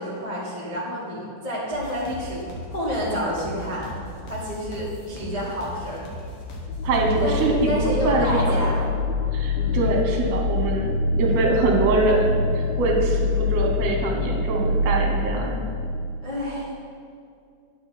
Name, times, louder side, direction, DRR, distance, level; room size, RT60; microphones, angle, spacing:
voice 1, 0.0-3.9 4.3-6.1 7.2-7.4 7.7-8.8 9.5-9.9 12.9-13.3 16.2-16.7, equal, 25° left, -8 dB, 0.8 m, -29 dB
sound 1, 1.7-7.7, left 1 dB, 60° left, 1.9 m, -37 dB
sound 2, 6.6-16.3, left 3 dB, 85° left, 1.4 m, -25 dB
voice 2, 6.8-7.7 8.1-8.4 8.8-8.9 9.3-15.6, right 3 dB, 70° right, 0 dB, 2.2 m, -24 dB
10.0 x 6.3 x 4.3 m, 2.4 s
omnidirectional pair, 3.4 m